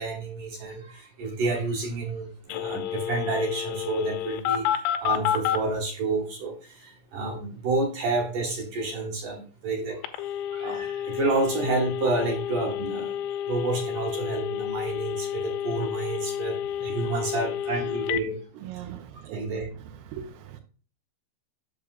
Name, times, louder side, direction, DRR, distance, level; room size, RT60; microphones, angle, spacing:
voice 1, 0.0-4.6 5.0-10.2 10.5-13.1 13.5-16.6 16.8-18.4 19.3-19.7, right 3 dB, 55° right, 2 dB, 2.5 m, -29 dB
Telephone, 2.5-5.6 10.0-18.2, left 10 dB, 80° left, 2.9 m, -30 dB
voice 2, 16.8-17.2 18.6-19.4 20.1-20.6, right 10 dB, 90° right, 8 dB, 3.7 m, -39 dB
8.0 x 6.8 x 2.5 m, 0.38 s
omnidirectional pair, 5.8 m